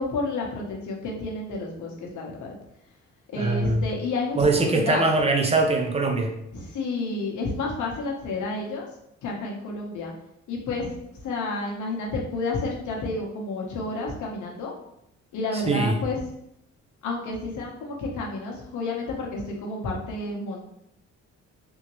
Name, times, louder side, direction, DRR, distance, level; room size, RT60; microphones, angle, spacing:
voice 1, 0.0-2.5 3.3-5.0 6.5-8.9 9.2-10.1 10.5-10.9 11.2-14.7 15.3-16.2 17.0-20.6, left 3 dB, 75° left, -1 dB, 1.1 m, -30 dB
voice 2, 3.4-3.9 4.3-6.4 15.5-16.0, right 3 dB, 20° right, 3 dB, 0.7 m, -22 dB
3.6 x 2.8 x 3.1 m, 0.78 s
cardioid pair, 90°, 30 cm